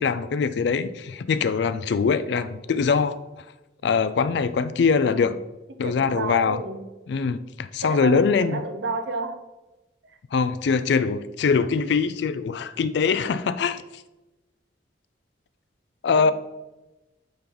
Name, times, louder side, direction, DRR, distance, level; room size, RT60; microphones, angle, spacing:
voice 1, 0.0-3.2 3.8-5.4 5.8-6.6 7.1-8.6 10.3-13.8 16.0-16.3, left 5 dB, 65° left, 0.4 m, -22 dB
voice 2, 5.8-6.8 7.8-9.4 10.0-10.2 16.1-16.3, right 3 dB, 70° right, 0.7 m, -31 dB
8.5 x 3.0 x 3.9 m
head